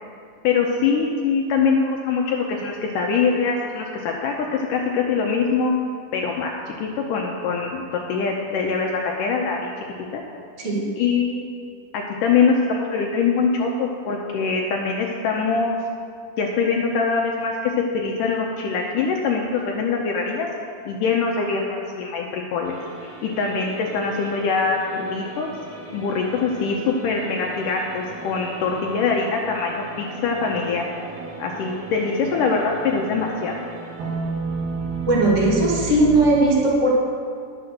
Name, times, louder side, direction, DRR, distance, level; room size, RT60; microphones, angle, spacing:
voice 1, 0.4-5.7 6.1-9.7 10.1-10.2 11.0-11.5 11.9-15.8 16.4-20.5 20.9-22.8 23.2-25.5 25.9-30.8 31.4-33.5, left 5 dB, 75° left, 0 dB, 2.0 m, -23 dB
sound 1, 22.7-36.4, right 3 dB, 60° right, 3.4 m, -34 dB
voice 2, 35.1-36.9, right 2 dB, 75° right, -4 dB, 0.6 m, -18 dB
11.0 x 7.6 x 6.5 m, 2.2 s
omnidirectional pair, 4.5 m